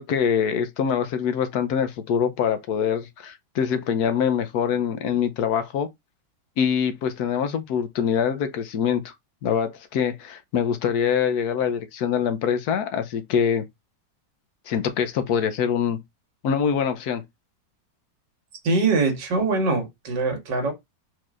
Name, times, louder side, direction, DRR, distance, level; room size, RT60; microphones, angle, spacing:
voice 1, 0.0-5.9 6.6-9.1 9.4-13.6 14.7-16.0 16.4-17.2, left 7 dB, 65° left, 1.1 m, -24 dB
voice 2, 18.6-20.7, right 3 dB, 75° right, 1.9 m, -23 dB
4.6 x 4.0 x 2.4 m
omnidirectional pair, 2.0 m